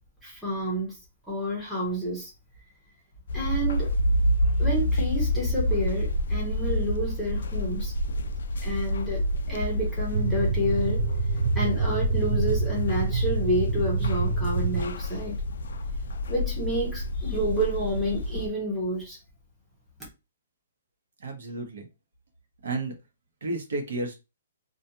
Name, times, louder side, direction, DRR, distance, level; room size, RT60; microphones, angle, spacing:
voice 1, 0.2-1.0 1.3-2.3 3.3-3.9 4.6-7.9 8.6-11.0 11.6-15.4 16.3-19.2, equal, ahead, 0.8 m, -29 dB
sound 1, 3.3-18.5, left 1 dB, 65° left, 0.3 m, -28 dB
sound 2, 10.1-14.8, right 5 dB, 50° right, 0.3 m, -27 dB
voice 2, 21.2-21.9 22.6-22.9 23.4-24.1, right 2 dB, 70° right, 0.9 m, -32 dB
2.4 x 2.3 x 2.8 m
hypercardioid pair, 175°, 0 cm